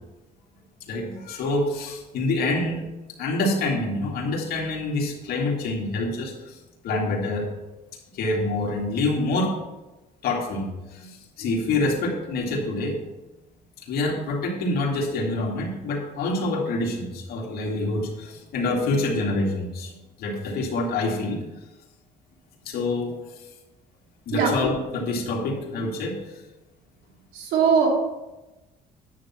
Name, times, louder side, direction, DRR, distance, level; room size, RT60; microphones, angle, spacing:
voice 1, 0.9-2.8 3.2-6.6 6.8-7.5 8.1-9.6 10.2-13.0 13.9-21.4 22.6-23.2 24.3-26.4, left 2 dB, 65° left, -2 dB, 2.3 m, -26 dB
voice 2, 27.3-27.9, right 6 dB, 85° right, 0 dB, 2.6 m, -20 dB
9.9 x 7.3 x 4.3 m, 1.0 s
cardioid pair, 110°, 17 cm